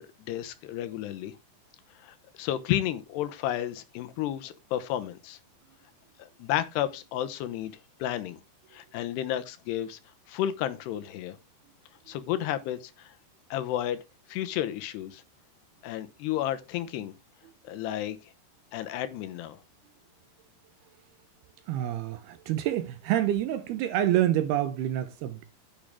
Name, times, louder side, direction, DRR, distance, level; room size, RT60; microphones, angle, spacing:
voice 1, 0.0-1.4 2.0-5.4 6.2-8.4 8.7-10.0 10.3-11.4 12.1-13.1 13.5-14.0 14.3-15.2 15.8-17.1 17.6-18.2 18.7-19.6, left 12 dB, 75° left, 2.8 m, -32 dB
voice 2, 21.7-25.4, right 12 dB, 75° right, 2.6 m, -27 dB
10.5 x 8.6 x 3.5 m
omnidirectional pair, 5.2 m